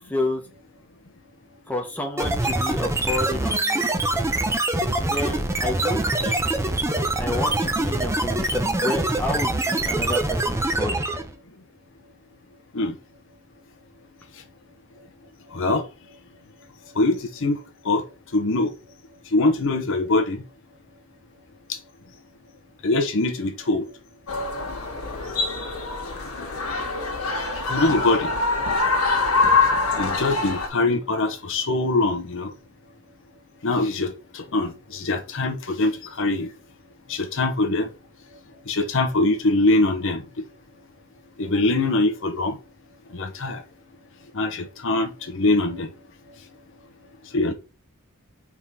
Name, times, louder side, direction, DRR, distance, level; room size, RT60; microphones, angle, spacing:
voice 1, 0.1-0.4 1.7-3.9 5.1-6.4 7.2-11.0, left 1 dB, 10° left, 1.2 m, -30 dB
sound 1, 2.2-11.3, right 2 dB, 15° right, 0.8 m, -24 dB
voice 2, 15.5-15.9 17.0-17.6 17.8-18.0 18.3-18.7 19.3-20.4 22.8-23.8 27.7-28.3 30.0-32.5 33.6-35.9 36.2-36.5 37.1-37.9 38.7-40.2 41.4-42.5 43.1-43.6 44.3-45.9 47.3-47.5, left 2 dB, 65° left, 0.8 m, -23 dB
sound 2, 24.3-30.7, left 3 dB, 85° left, 1.5 m, -24 dB
4.7 x 3.7 x 5.4 m
head